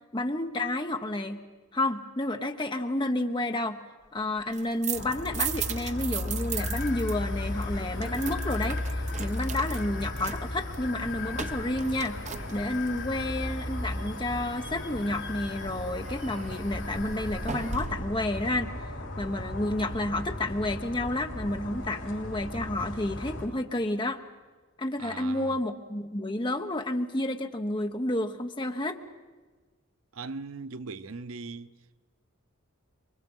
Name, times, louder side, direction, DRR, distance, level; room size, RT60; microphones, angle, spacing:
voice 1, 0.1-1.4 1.7-3.8 4.1-8.8 9.2-12.2 12.5-18.7 19.2-24.2 24.8-29.0, left 1 dB, 20° left, 1.1 m, -30 dB
sound 1, 4.4-7.1 7.4-13.0 16.0-18.3, right 6 dB, 35° right, 0.7 m, -37 dB
sound 2, 4.9-23.5, left 1 dB, 75° left, 6.4 m, -36 dB
sound 3, 6.6-17.7, left 7 dB, 55° left, 4.2 m, -44 dB
voice 2, 25.0-25.6 30.1-31.7, right 4 dB, 85° right, 0.8 m, -39 dB
28.5 x 23.5 x 5.5 m
head